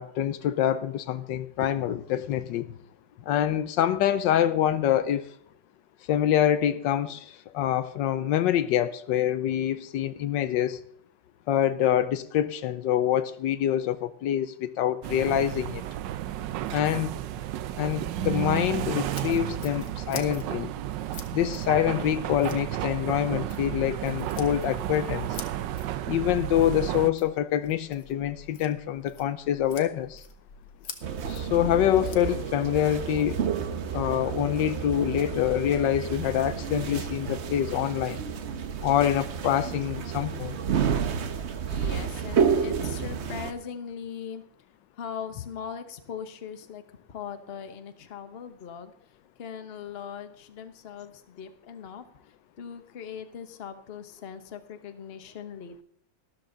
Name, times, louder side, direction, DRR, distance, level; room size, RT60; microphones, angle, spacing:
voice 1, 0.0-2.7 3.3-5.3 6.1-10.8 11.5-15.8 16.7-17.1 17.8-20.7 21.3-25.3 26.1-30.2 31.3-33.4 33.9-38.2 38.8-40.6, left 11 dB, 85° left, 1.4 m, -26 dB
sound 1, 15.0-27.1, right 13 dB, 80° right, 1.3 m, -32 dB
sound 2, 19.0-32.3, left 6 dB, 65° left, 1.7 m, -48 dB
sound 3, 31.0-43.5, right 7 dB, 50° right, 0.9 m, -30 dB
voice 2, 41.7-44.4 44.9-46.8 47.1-48.9 49.4-55.8, left 7 dB, 40° left, 1.0 m, -40 dB
13.0 x 12.5 x 3.9 m
omnidirectional pair, 1.9 m